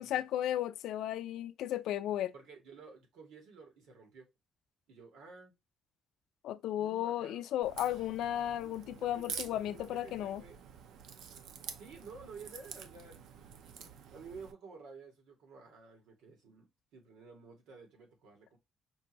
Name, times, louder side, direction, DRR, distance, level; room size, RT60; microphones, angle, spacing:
voice 1, 0.0-2.3 6.4-10.4, left 12 dB, 80° left, 0.4 m, -34 dB
voice 2, 2.3-4.3 4.9-5.5 6.8-7.4 8.6-10.6 11.2-11.3 11.8-18.6, right 4 dB, 90° right, 1.8 m, -53 dB
Crack, 7.6-14.5, right 7 dB, 75° right, 0.6 m, -48 dB
5.4 x 2.6 x 2.9 m
cardioid pair, 145°, 0 cm